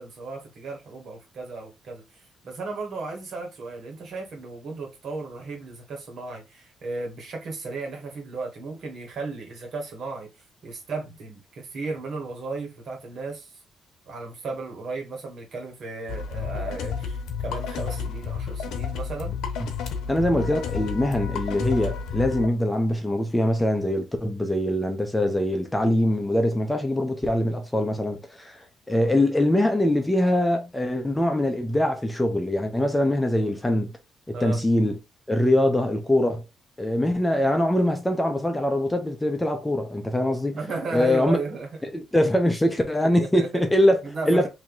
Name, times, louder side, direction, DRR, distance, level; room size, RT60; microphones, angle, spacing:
voice 1, 0.0-10.3 10.6-13.5 14.1-19.4 34.3-34.6 35.5-35.7 40.5-41.7 43.0-43.6 44.0-44.5, right 3 dB, 60° right, 1.7 m, -35 dB
sound 1, 16.1-22.5, left 6 dB, 80° left, 0.8 m, -31 dB
voice 2, 20.1-33.9 34.4-35.0 35.3-36.4 36.8-40.6 40.9-41.4 41.9-44.5, left 1 dB, 10° left, 0.9 m, -23 dB
3.0 x 2.9 x 3.9 m
cardioid pair, 90°, 0 cm